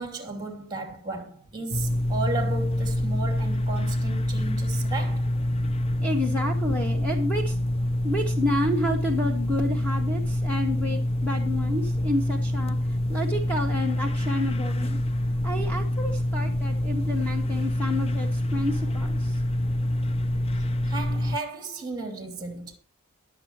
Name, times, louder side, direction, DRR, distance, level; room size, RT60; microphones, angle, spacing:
voice 1, 0.0-5.3 20.9-22.8, right 3 dB, 20° right, 2.8 m, -34 dB
sound 1, 1.7-21.4, left 1 dB, 25° left, 0.5 m, -26 dB
voice 2, 5.6-15.0 15.4-19.4, left 1 dB, 5° left, 1.9 m, -30 dB
21.5 x 7.6 x 3.0 m
head